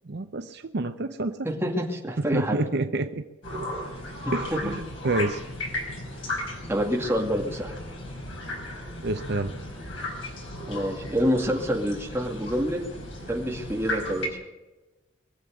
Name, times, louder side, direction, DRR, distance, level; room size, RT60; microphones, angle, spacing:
voice 1, 0.0-1.5 2.3-3.3 4.3-5.4 9.0-9.5, right 2 dB, 55° right, 8 dB, 0.7 m, -28 dB
voice 2, 1.4-2.6 4.2-4.7 6.7-7.7 10.7-12.8 13.3-14.3, equal, 10° right, 0 dB, 2.4 m, -27 dB
sound 1, 3.4-14.3, left 1 dB, 70° left, 5.0 m, -35 dB
23.0 x 7.8 x 8.0 m, 1.1 s
head